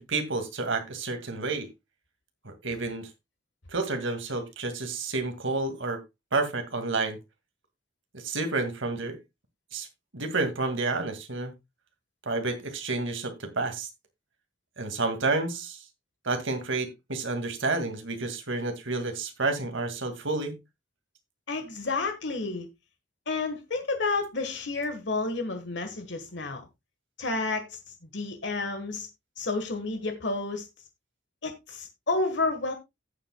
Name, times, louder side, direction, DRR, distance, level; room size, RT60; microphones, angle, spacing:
voice 1, 0.0-1.7 2.4-3.1 3.7-6.0 6.3-7.2 8.1-9.2 9.7-9.9 10.1-11.5 12.3-13.9 14.8-15.8 16.2-20.6, right 3 dB, 75° right, 2.0 m, -30 dB
voice 2, 21.5-22.7 23.3-26.7 27.2-27.8 28.1-29.1 29.4-30.7 31.4-32.7, left 3 dB, 60° left, 1.4 m, -30 dB
15.5 x 7.5 x 2.2 m
head